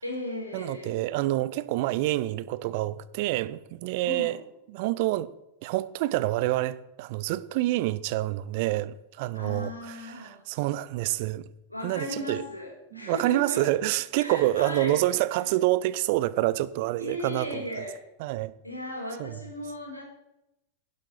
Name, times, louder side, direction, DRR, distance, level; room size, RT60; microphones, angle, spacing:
voice 1, 0.0-1.0 4.0-4.4 9.3-10.4 11.7-13.7 14.2-15.1 15.4-15.5 17.0-18.0 18.6-20.0, left 1 dB, 85° left, 3.9 m, -36 dB
voice 2, 0.5-4.4 4.7-5.3 5.6-9.9 10.5-11.5 11.8-12.4 12.9-17.6 18.2-18.5 19.2-19.3, right 16 dB, 50° right, 0.6 m, -27 dB
11.5 x 11.0 x 5.7 m
figure-of-eight pair, 90°, 0 cm